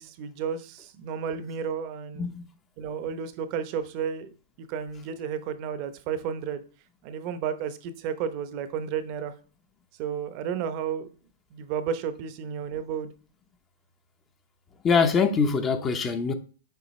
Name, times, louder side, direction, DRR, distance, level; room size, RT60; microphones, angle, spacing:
voice 1, 0.0-2.3 2.8-4.3 4.7-6.6 7.0-9.3 10.0-11.1 11.5-13.1, right 7 dB, 45° right, 0.8 m, -32 dB
voice 2, 14.8-16.3, left 5 dB, 20° left, 0.7 m, -23 dB
6.8 x 4.5 x 3.1 m
hypercardioid pair, 140°, 0 cm